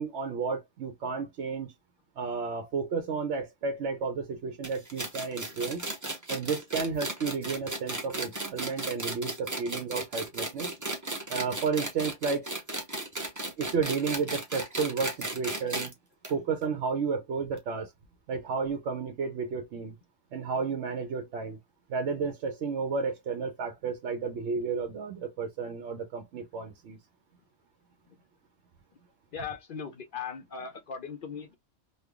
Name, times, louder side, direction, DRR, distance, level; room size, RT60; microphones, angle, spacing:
voice 1, 0.0-1.7 2.2-5.8 6.3-10.7 11.3-12.5 13.6-15.9 16.3-17.9 18.3-20.0 20.3-21.6 21.9-27.0, right 5 dB, 70° right, 0.9 m, -32 dB
sound 1, 4.6-15.9 16.2-16.3 16.6-16.7 17.6-17.7, right 2 dB, 20° right, 0.7 m, -35 dB
voice 2, 29.3-31.6, left 6 dB, 60° left, 0.5 m, -39 dB
3.3 x 2.1 x 3.4 m
omnidirectional pair, 1.3 m